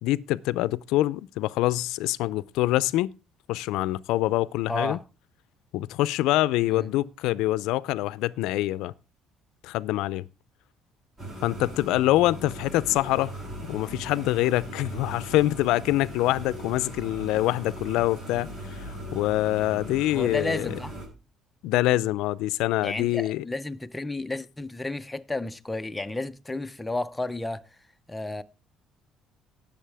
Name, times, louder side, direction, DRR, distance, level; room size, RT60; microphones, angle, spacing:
voice 1, 0.0-3.1 3.5-5.0 5.7-8.9 9.6-10.3 11.4-13.3 13.7-18.8 19.1-20.8 21.6-23.4, left 16 dB, 85° left, 0.5 m, -25 dB
voice 2, 4.7-5.0 6.7-6.9 12.9-13.0 20.1-21.0 22.8-27.6 28.1-28.4, left 2 dB, 10° left, 0.6 m, -32 dB
sound 1, 11.2-21.1, right 1 dB, 30° right, 7.0 m, -39 dB
18.5 x 7.2 x 3.4 m
cardioid pair, 155°, 0 cm